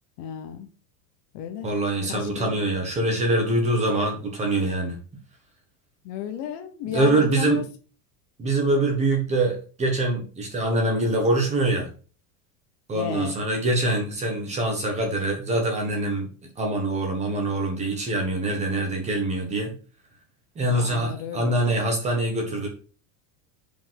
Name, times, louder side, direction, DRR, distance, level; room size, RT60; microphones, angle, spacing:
voice 1, 0.2-0.7 1.3-1.7 2.0-2.6 6.0-7.6 12.9-13.3 20.6-21.6, left 9 dB, 45° left, 7 dB, 1.0 m, -33 dB
voice 2, 1.6-5.0 6.9-7.6 8.4-11.9 12.9-16.3 16.6-19.7 20.5-22.7, right 2 dB, 15° right, 2 dB, 1.5 m, -24 dB
5.7 x 5.3 x 5.8 m, 0.38 s
supercardioid pair, 180°, 46 cm